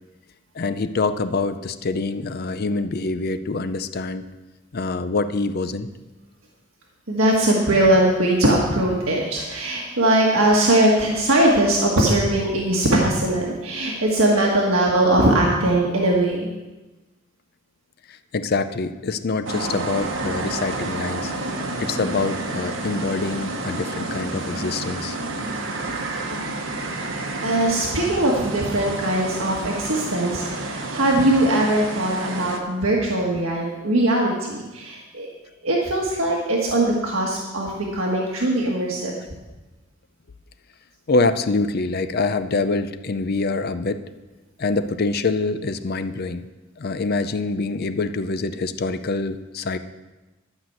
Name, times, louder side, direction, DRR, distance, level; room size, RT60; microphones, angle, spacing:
voice 1, 0.5-4.2 4.7-5.9 18.1-21.3 21.8-25.2 41.1-44.0 44.6-46.4 46.8-49.8, left 3 dB, 50° left, 11 dB, 0.5 m, -25 dB
voice 2, 7.1-16.5 27.0-27.1 27.4-35.3 35.6-39.1, right 1 dB, 85° right, -2 dB, 1.6 m, -20 dB
sound 1, 19.5-32.6, right 2 dB, 70° right, 1.2 m, -30 dB
12.0 x 5.9 x 7.9 m, 1.1 s
head